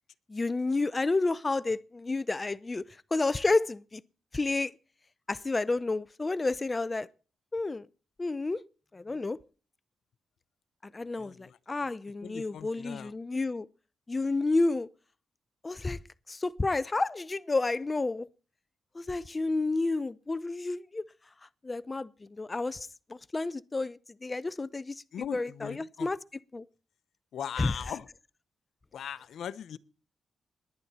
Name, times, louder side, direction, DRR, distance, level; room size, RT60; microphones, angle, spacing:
voice 1, 0.3-2.8 3.1-4.0 4.3-4.7 5.3-7.1 7.5-7.9 8.2-8.6 8.9-9.4 10.8-13.7 14.1-14.9 15.6-16.0 16.3-18.3 18.9-21.1 21.4-25.0 25.3-26.2 26.5-26.7 27.6-27.8, left 3 dB, 25° left, 0.5 m, -30 dB
voice 2, 12.2-13.1 25.1-26.1 27.3-28.1 28.9-29.8, left 9 dB, 75° left, 0.8 m, -39 dB
21.0 x 9.3 x 4.3 m
cardioid pair, 100°, 0 cm